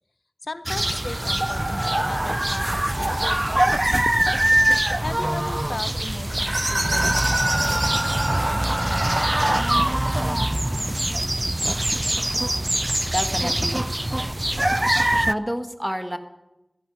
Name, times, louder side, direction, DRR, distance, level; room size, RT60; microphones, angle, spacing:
voice 1, 0.4-4.0 5.0-8.0, left 2 dB, 75° left, 12 dB, 0.7 m, -37 dB
sound 1, 0.7-15.3, right 1 dB, 25° right, 0.5 m, -23 dB
voice 2, 13.1-13.8 15.1-16.2, equal, 10° right, 8 dB, 1.5 m, -28 dB
16.0 x 14.0 x 5.4 m, 0.94 s
wide cardioid pair, 45°, 0 cm